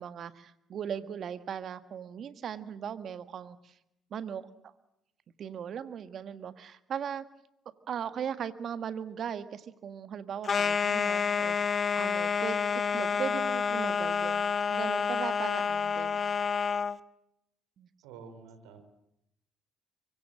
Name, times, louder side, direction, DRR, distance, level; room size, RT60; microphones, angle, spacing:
voice 1, 0.0-3.7 4.1-4.7 5.4-7.3 7.9-12.6 12.9-16.2 17.8-17.9, right 8 dB, 55° right, 12 dB, 1.7 m, -38 dB
sound 1, 10.4-17.0, left 6 dB, 40° left, 1.2 m, -29 dB
voice 2, 18.0-18.8, right 5 dB, 75° right, 10 dB, 4.0 m, -48 dB
24.5 x 23.5 x 7.7 m, 0.81 s
hypercardioid pair, 55°, 0 cm